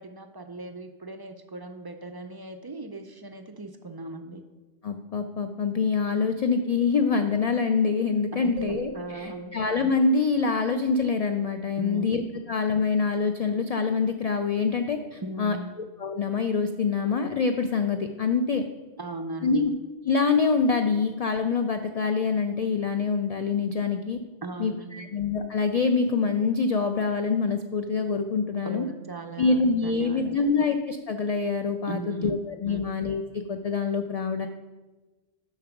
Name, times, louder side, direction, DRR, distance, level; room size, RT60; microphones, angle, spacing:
voice 1, 0.0-4.4 8.3-9.6 11.8-12.1 15.2-15.7 19.0-19.7 24.4-25.1 28.6-30.5 31.8-32.4 32.6-32.8, right 3 dB, 40° right, 7 dB, 0.3 m, -38 dB
voice 2, 4.8-8.9 9.2-12.2 12.5-15.6 16.0-18.6 19.4-19.7 20.0-24.2 24.6-28.8 29.4-33.2 33.5-34.5, left 4 dB, 55° left, 6 dB, 0.4 m, -25 dB
sound 1, 8.6-11.2, right 3 dB, 85° right, 0.9 m, -43 dB
7.4 x 5.9 x 5.9 m, 1.2 s
omnidirectional pair, 1.1 m